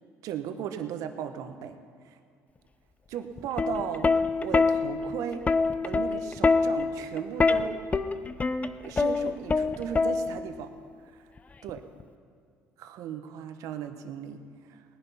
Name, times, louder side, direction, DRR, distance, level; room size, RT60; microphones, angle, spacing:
voice 1, 0.2-1.8 2.0-2.2 3.1-5.4 5.8-7.8 8.8-10.7 11.1-11.3 11.6-11.8 12.8-14.8, right 9 dB, 70° right, 8 dB, 1.2 m, -36 dB
Plucked string instrument, 3.4-10.6 11.7-12.0, left 4 dB, 25° left, 0.7 m, -25 dB
19.0 x 10.0 x 5.7 m, 2.1 s
supercardioid pair, 75°, 6 cm